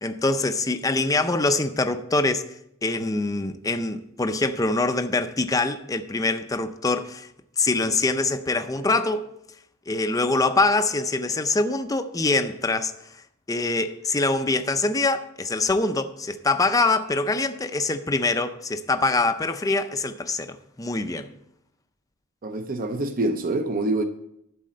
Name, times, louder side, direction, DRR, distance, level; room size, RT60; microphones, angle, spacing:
voice 1, 0.0-2.4 2.8-7.3 7.6-9.3 9.9-12.9 13.5-21.3, left 3 dB, 15° left, 0.5 m, -24 dB
voice 2, 22.4-24.0, right 2 dB, 40° right, 0.6 m, -25 dB
11.5 x 4.2 x 7.6 m
head